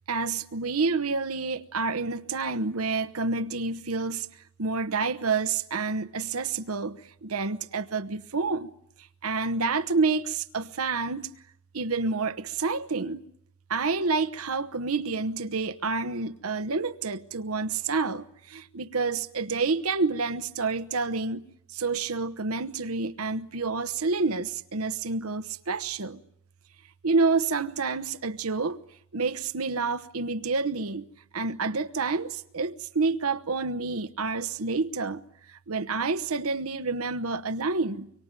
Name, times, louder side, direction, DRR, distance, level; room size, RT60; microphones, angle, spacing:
voice 1, 0.1-4.3 4.6-8.7 9.2-11.3 11.7-13.3 13.7-26.2 27.0-28.8 29.1-31.1 31.3-35.2 35.5-38.1, right 4 dB, 85° right, 1.1 m, -28 dB
25.0 x 24.5 x 9.0 m
head